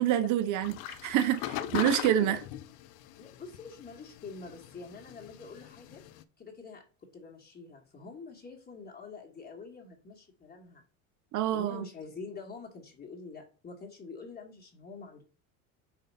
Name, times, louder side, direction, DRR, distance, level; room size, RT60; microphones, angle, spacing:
voice 1, 0.0-2.4 11.3-11.9, right 11 dB, 45° right, 0.8 m, -27 dB
sound 1, 0.6-6.2, left 13 dB, 60° left, 0.6 m, -40 dB
voice 2, 1.6-1.9 2.2-2.4 3.2-6.0 6.4-6.8 7.1-10.8 11.5-15.2, left 4 dB, 25° left, 1.6 m, -46 dB
4.6 x 3.8 x 5.4 m
hypercardioid pair, 90°, 41 cm